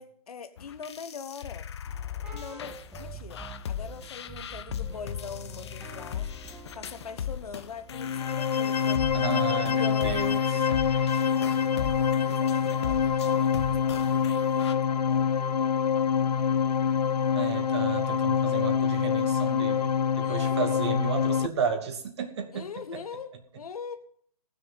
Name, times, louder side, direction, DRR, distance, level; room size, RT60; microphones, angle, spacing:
voice 1, 0.0-1.7 2.3-3.4 3.7-6.3 6.7-9.0 9.4-13.5 14.6-15.3 20.2-20.8 22.5-24.0, left 6 dB, 65° left, 9 dB, 1.1 m, -42 dB
sound 1, 0.6-14.7, left 9 dB, 45° left, 0.8 m, -38 dB
sound 2, 1.8-8.4, right 2 dB, 5° right, 2.0 m, -46 dB
sound 3, 7.9-21.5, left 7 dB, 85° left, 0.5 m, -25 dB
voice 2, 9.1-10.4 17.3-23.0, right 6 dB, 45° right, 5 dB, 2.4 m, -33 dB
18.5 x 6.7 x 5.5 m, 0.62 s
hypercardioid pair, 150°, 20 cm